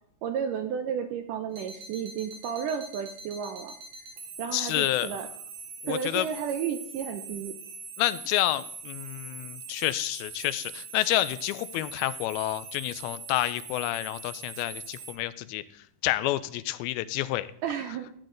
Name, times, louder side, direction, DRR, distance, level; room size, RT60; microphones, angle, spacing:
voice 1, 0.2-3.7 4.4-5.3 5.9-7.5 17.6-18.2, right 8 dB, 80° right, 6 dB, 1.9 m, -32 dB
sound 1, 1.5-15.2, right 4 dB, 55° right, 2.4 m, -43 dB
voice 2, 4.5-5.1 5.8-6.3 8.0-15.6 16.0-17.5, left 15 dB, 85° left, 14 dB, 2.4 m, -29 dB
13.5 x 9.2 x 3.8 m, 0.64 s
omnidirectional pair, 4.4 m